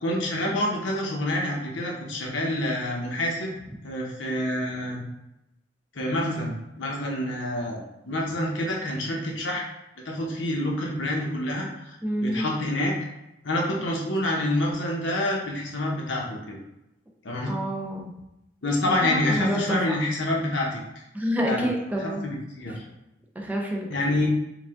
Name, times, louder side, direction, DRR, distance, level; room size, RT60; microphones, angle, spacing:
voice 1, 0.0-3.5 3.8-5.0 5.9-9.7 10.0-11.9 12.2-12.9 13.4-16.6 17.2-17.5 18.6-21.0 21.4-21.7 22.0-22.8 23.9-24.3, left 1 dB, 75° left, -1 dB, 0.9 m, -27 dB
voice 2, 12.0-12.5 17.5-18.1 19.0-20.0 21.1-22.2 23.4-23.9, equal, 10° right, -1 dB, 0.5 m, -28 dB
4.8 x 2.4 x 3.6 m, 0.90 s
head